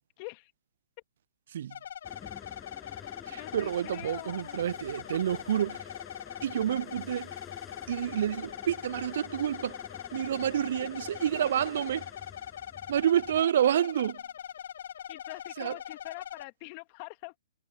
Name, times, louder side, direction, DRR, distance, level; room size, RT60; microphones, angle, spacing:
voice 1, 0.2-0.5 3.4-4.6 15.1-17.4, left 30 dB, 40° left, 2.3 m, -44 dB
sound 1, 1.7-16.4, left 9 dB, 60° left, 4.5 m, -42 dB
sound 2, 2.0-13.4, left 8 dB, 15° left, 7.1 m, -49 dB
voice 2, 3.3-5.8 6.4-7.3 7.9-9.8 10.1-12.1 12.9-14.2 15.6-15.8, right 10 dB, 60° right, 0.4 m, -29 dB
figure-of-eight pair, 125°, 0 cm